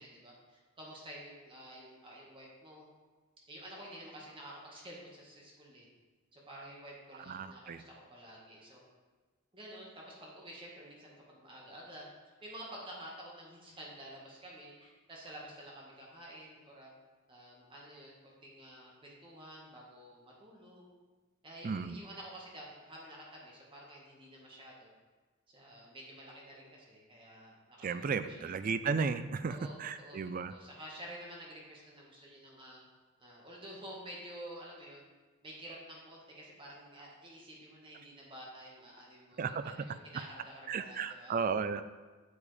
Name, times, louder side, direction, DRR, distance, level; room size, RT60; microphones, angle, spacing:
voice 1, 0.0-2.8 3.5-5.9 6.3-8.9 9.5-12.1 12.4-16.9 17.3-20.9 21.4-24.9 25.5-28.1 28.4-28.5 29.5-30.2 30.4-32.8 33.2-35.0 35.4-41.3, right 1 dB, 25° right, -4 dB, 1.6 m, -50 dB
voice 2, 7.3-7.8 21.6-22.0 27.8-30.5 39.4-39.9 40.7-41.8, right 5 dB, 40° right, 12 dB, 0.3 m, -34 dB
8.3 x 7.1 x 3.4 m, 1.3 s
head